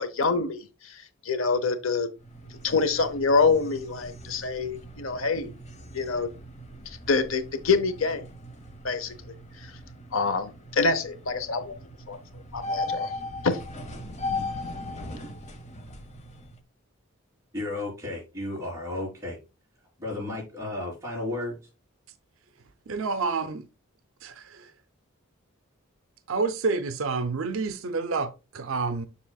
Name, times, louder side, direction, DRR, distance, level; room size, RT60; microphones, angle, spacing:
voice 1, 0.0-2.1 2.6-5.5 5.9-6.3 7.1-8.2 8.8-9.1 9.6-9.7 10.1-11.7 12.1-12.2 12.5-13.1 13.4-13.6, left 4 dB, 65° left, 0.8 m, -26 dB
sound 1, 2.1-16.6, left 2 dB, 30° left, 1.1 m, -38 dB
voice 2, 17.5-19.4 20.0-21.6, left 2 dB, 15° right, 3.8 m, -33 dB
voice 3, 22.9-23.7 24.2-24.7 26.3-29.1, right 4 dB, 65° right, 0.6 m, -29 dB
7.2 x 6.5 x 2.3 m
head